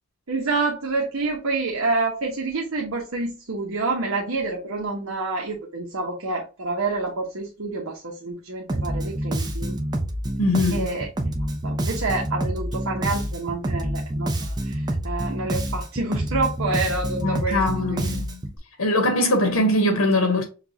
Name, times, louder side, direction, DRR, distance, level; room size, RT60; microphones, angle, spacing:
voice 1, 0.3-9.7 10.7-11.1 11.6-17.6 17.9-18.1, right 3 dB, 70° right, 0.9 m, -28 dB
Bass guitar, 8.7-18.6, right 1 dB, 20° right, 0.6 m, -27 dB
voice 2, 10.4-10.9 17.2-18.4 18.8-20.4, left 1 dB, 80° left, 1.0 m, -21 dB
5.9 x 2.4 x 2.8 m
head